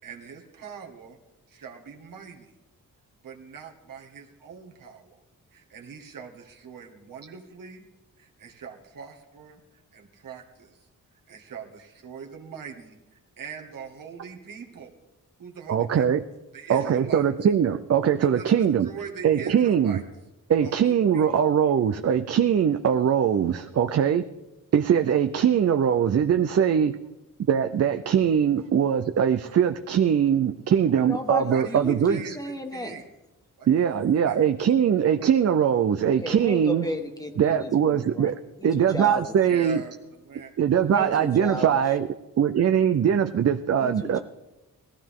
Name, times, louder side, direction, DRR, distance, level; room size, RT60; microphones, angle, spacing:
voice 1, 0.0-1.2 1.5-2.6 3.2-5.2 5.5-7.9 8.2-10.9 11.3-14.9 15.4-16.1 16.5-17.2 18.4-20.0 20.6-21.3 30.9-31.0 31.5-33.1 33.6-34.4 36.8-36.9 38.8-38.9 39.5-40.5 40.8-41.3, right 7 dB, 70° right, 1 dB, 1.9 m, -42 dB
voice 2, 15.7-16.2 16.7-18.9 19.2-20.0 20.5-24.3 24.7-27.0 27.5-32.3 33.7-36.9 37.4-39.8 40.6-42.1 42.4-44.2, right 8 dB, 45° right, 8 dB, 0.5 m, -22 dB
voice 3, 30.9-33.0 36.2-38.3 38.6-39.2 40.7-41.7 43.8-44.2, left 1 dB, 10° left, 4 dB, 1.5 m, -33 dB
19.0 x 15.0 x 3.7 m, 1.0 s
wide cardioid pair, 130°, 34 cm